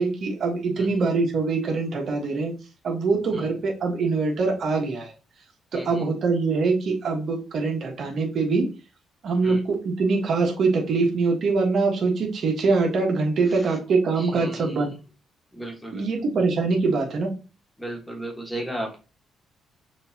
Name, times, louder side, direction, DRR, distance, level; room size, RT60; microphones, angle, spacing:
voice 1, 0.0-2.5 2.8-5.1 5.7-8.7 9.2-14.9 15.9-17.3, right 4 dB, 60° right, 1 dB, 1.4 m, -23 dB
voice 2, 0.7-1.1 3.3-3.5 5.7-6.1 9.4-9.6 13.5-13.8 14.1-15.0 15.5-16.2 17.8-19.0, right 1 dB, 5° left, 1 dB, 1.5 m, -36 dB
6.4 x 2.8 x 2.8 m, 0.32 s
cardioid pair, 90°, 0 cm